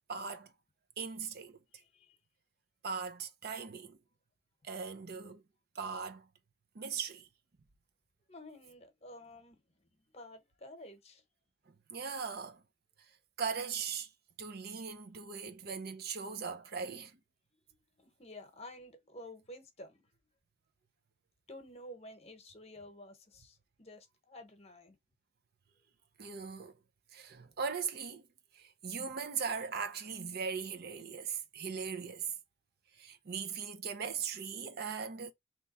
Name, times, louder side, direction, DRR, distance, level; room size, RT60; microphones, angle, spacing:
voice 1, 0.1-0.5 1.0-1.6 2.8-4.0 4.6-5.4 5.8-6.3 6.7-7.3 11.9-12.6 13.4-14.1 14.4-17.2 26.2-26.7 27.1-28.3 28.5-32.3 33.0-35.3, right 6 dB, 55° right, 0.6 m, -39 dB
voice 2, 1.7-2.2 8.3-11.2 18.0-20.0 21.5-25.0 30.1-30.2, left 1 dB, 35° left, 1.0 m, -51 dB
3.5 x 3.0 x 4.1 m
head